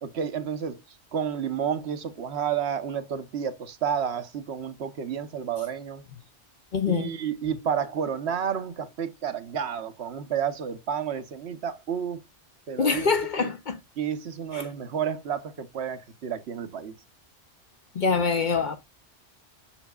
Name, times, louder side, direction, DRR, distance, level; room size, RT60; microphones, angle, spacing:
voice 1, 0.0-6.0 6.9-12.2 12.7-13.1 13.4-13.5 14.0-16.9, right 8 dB, 65° right, 1.0 m, -31 dB
voice 2, 6.7-7.1 12.8-13.8 14.5-14.6 17.9-18.8, left 5 dB, 50° left, 0.7 m, -25 dB
7.2 x 6.1 x 2.2 m
omnidirectional pair, 1.2 m